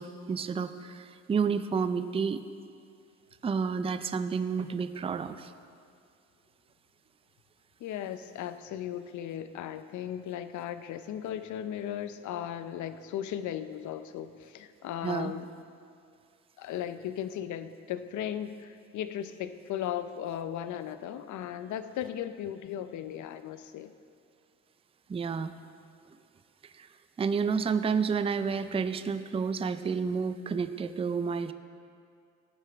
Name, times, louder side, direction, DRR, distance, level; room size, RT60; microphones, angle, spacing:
voice 1, 0.0-2.4 3.4-5.5 15.0-15.3 25.1-25.5 26.6-26.9 27.2-31.5, right 5 dB, 20° right, 11 dB, 0.4 m, -30 dB
voice 2, 7.8-15.5 16.6-23.9, left 10 dB, 75° left, 11 dB, 0.6 m, -36 dB
14.5 x 9.0 x 3.5 m, 2.3 s
cardioid pair, 90°, 30 cm